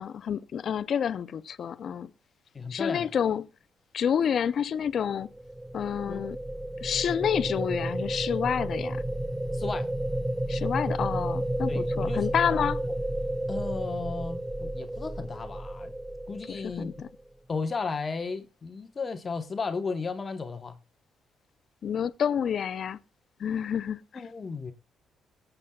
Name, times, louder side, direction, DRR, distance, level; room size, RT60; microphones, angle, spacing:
voice 1, 0.0-2.1 2.7-3.5 3.9-5.3 5.7-6.4 6.8-9.0 10.5-12.8 16.5-17.1 21.8-23.0 23.4-24.0, left 8 dB, 60° left, 0.5 m, -29 dB
voice 2, 2.5-3.1 6.1-6.2 9.5-9.9 11.7-12.7 13.5-15.9 16.3-16.9 17.5-20.8 24.1-24.7, left 4 dB, 35° left, 1.0 m, -34 dB
sound 1, 5.1-17.3, right 1 dB, 10° right, 0.5 m, -32 dB
21.5 x 7.9 x 2.3 m
cardioid pair, 90°, 0 cm